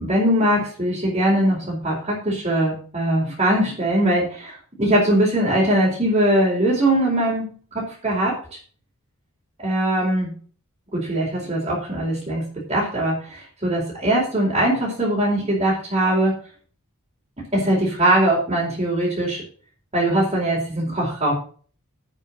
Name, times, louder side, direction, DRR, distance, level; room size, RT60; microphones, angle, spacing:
voice 1, 0.0-7.5 7.7-8.6 9.6-10.3 10.9-12.4 12.7-16.4 17.5-19.4 19.9-21.3, right 1 dB, 25° right, -7 dB, 4.5 m, -21 dB
9.1 x 7.1 x 7.4 m, 0.42 s
head